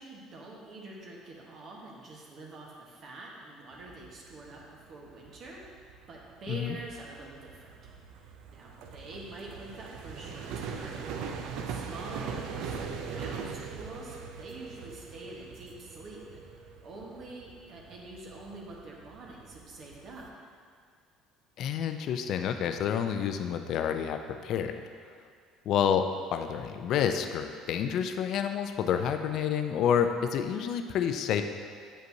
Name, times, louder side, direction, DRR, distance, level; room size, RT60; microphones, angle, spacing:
voice 1, 0.0-7.7 8.3-20.3, right 2 dB, 50° right, -2 dB, 1.3 m, -46 dB
sound 1, 3.7-20.3, right 6 dB, 75° right, 0.4 m, -42 dB
voice 2, 21.6-24.7 25.7-26.0 26.3-31.4, left 8 dB, 60° left, 7 dB, 0.4 m, -29 dB
7.6 x 5.2 x 2.8 m, 2.1 s
supercardioid pair, 95°, 0 cm